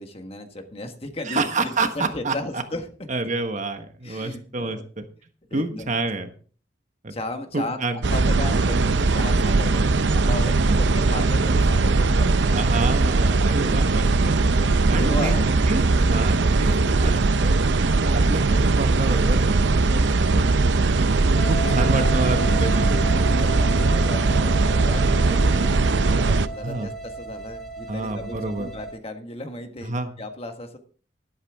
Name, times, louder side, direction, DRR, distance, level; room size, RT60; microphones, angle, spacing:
voice 1, 0.0-2.8 4.0-4.8 5.5-6.0 7.1-12.6 14.5-15.7 21.6-22.1 22.3-22.6 22.9-26.9 27.2-30.8, left 1 dB, 35° left, 6 dB, 1.5 m, -36 dB
voice 2, 1.3-2.6 3.1-5.0 5.5-6.3 7.0-7.1 7.5-8.0 10.6-10.8 12.5-14.3 14.9-15.4 15.7-17.7 18.0-20.5 21.5-23.3 26.6-26.9 27.9-28.7 29.8-30.1, right 2 dB, 45° right, 7 dB, 1.3 m, -28 dB
sound 1, 8.0-26.5, right 3 dB, 90° right, 0.7 m, -20 dB
sound 2, 21.3-28.9, right 3 dB, ahead, 4.2 m, -34 dB
13.0 x 11.5 x 3.6 m, 0.42 s
head